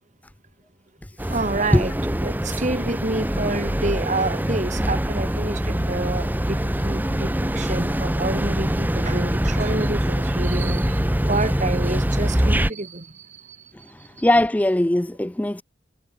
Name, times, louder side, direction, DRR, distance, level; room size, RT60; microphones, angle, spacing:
sound 1, 1.2-12.7, equal, 10° right, 1.2 m, -24 dB
voice 1, 1.3-1.9 2.2-13.7 14.0-14.1, right 2 dB, 40° right, 2.4 m, -29 dB
voice 2, 14.2-15.6, left 1 dB, 10° left, 0.4 m, -19 dB
head